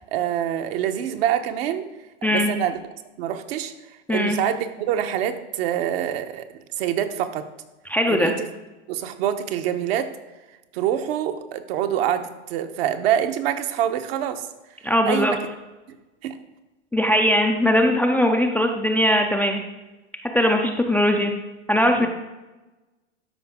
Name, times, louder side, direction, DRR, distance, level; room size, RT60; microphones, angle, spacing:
voice 1, 0.1-1.9 2.2-2.8 3.2-3.7 4.1-6.5 6.8-7.5 8.1-8.5 8.9-10.1 10.7-14.5 15.1-15.4 16.2-16.3 22.0-22.1, right 10 dB, 60° right, 8 dB, 0.9 m, -25 dB
voice 2, 7.9-8.3 14.8-15.3 16.9-19.6 20.3-21.3 21.7-22.1, left 1 dB, 5° left, 2 dB, 0.4 m, -20 dB
12.5 x 5.1 x 3.6 m, 1.1 s
hypercardioid pair, 120°, 34 cm